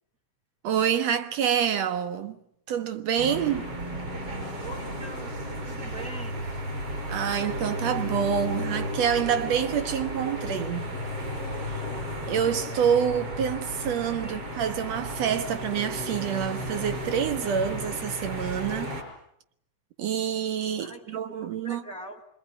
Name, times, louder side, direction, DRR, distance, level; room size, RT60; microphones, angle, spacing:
voice 1, 0.6-2.4 2.7-3.7 7.1-10.9 12.3-18.9 20.0-21.8, right 8 dB, 65° right, 2.4 m, -27 dB
sound 1, 3.2-19.0, equal, 50° right, 6.4 m, -34 dB
voice 2, 4.6-5.4 5.7-6.5 14.2-14.6 20.8-22.3, right 2 dB, 30° right, 2.2 m, -43 dB
25.0 x 23.0 x 9.7 m
omnidirectional pair, 3.4 m